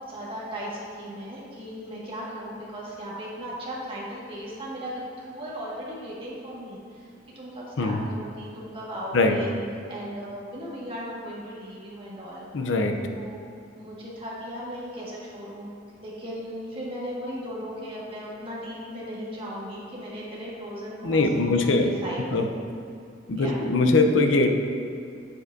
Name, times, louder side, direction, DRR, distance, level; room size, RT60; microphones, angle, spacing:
voice 1, 0.1-9.5 9.9-12.4 13.1-13.4 13.7-15.7 16.0-22.5 23.4-23.5, equal, 30° right, -7 dB, 1.7 m, -37 dB
voice 2, 12.5-13.0 21.0-21.9 22.3-22.5 23.3-24.5, left 3 dB, 80° left, 5 dB, 0.6 m, -21 dB
7.9 x 7.9 x 2.6 m, 2.4 s
head